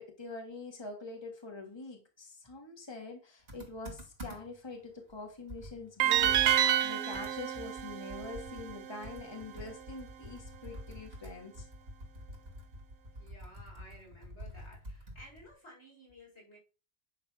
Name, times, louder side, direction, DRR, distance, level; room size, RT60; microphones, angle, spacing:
voice 1, 0.0-11.7, left 3 dB, 25° left, 2 dB, 1.8 m, -45 dB
Computer keyboard, 3.5-4.7 5.1-5.2 5.5-8.8 9.0-15.5, equal, 60° right, 2.9 m, -47 dB
sound 1, 6.0-9.1, right 11 dB, 80° right, 0.9 m, -29 dB
voice 2, 13.2-16.6, equal, 85° left, -3 dB, 5.3 m, -54 dB
9.9 x 4.0 x 6.1 m, 0.33 s
omnidirectional pair, 1.1 m